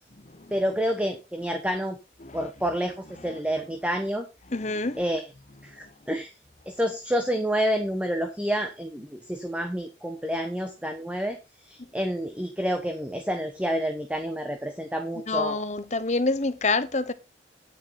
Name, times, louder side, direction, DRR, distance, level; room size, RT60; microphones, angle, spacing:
voice 1, 0.5-2.0 2.3-4.3 5.0-5.2 5.6-6.3 6.7-11.4 11.6-15.6, equal, 5° right, 1.1 m, -28 dB
voice 2, 4.5-5.0 15.3-17.1, left 3 dB, 40° left, 1.0 m, -27 dB
9.7 x 9.4 x 4.2 m
head